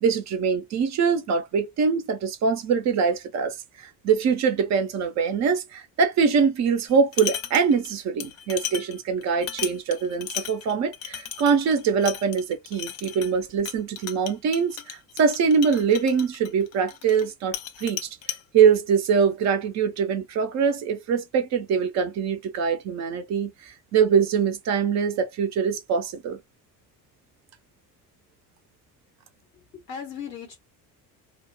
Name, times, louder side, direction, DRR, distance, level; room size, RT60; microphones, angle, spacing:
voice 1, 0.0-18.1 18.5-26.4, right 6 dB, 35° right, 0.6 m, -23 dB
sound 1, 6.9-7.9 8.2-17.3 17.5-18.4, left 10 dB, 35° left, 0.4 m, -35 dB
voice 2, 29.5-30.6, left 7 dB, 85° left, 1.0 m, -37 dB
2.8 x 2.0 x 2.8 m
figure-of-eight pair, 55°, 49 cm